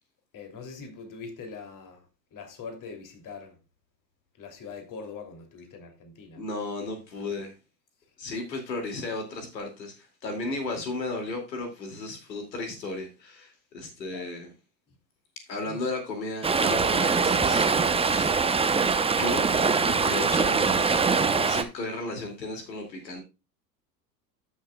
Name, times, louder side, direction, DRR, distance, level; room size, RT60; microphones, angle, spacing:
voice 1, 0.3-2.0 2.3-3.5 4.4-6.4 14.1-14.3 15.7-15.8, left 5 dB, 40° left, 3.2 m, -42 dB
voice 2, 6.4-7.5 8.2-14.5 15.5-17.7 18.0-18.3 19.2-23.2, left 2 dB, 90° left, 2.7 m, -34 dB
Stream, 16.4-21.6, right 5 dB, 10° right, 0.9 m, -23 dB
14.0 x 6.6 x 2.4 m
hypercardioid pair, 90°, 49 cm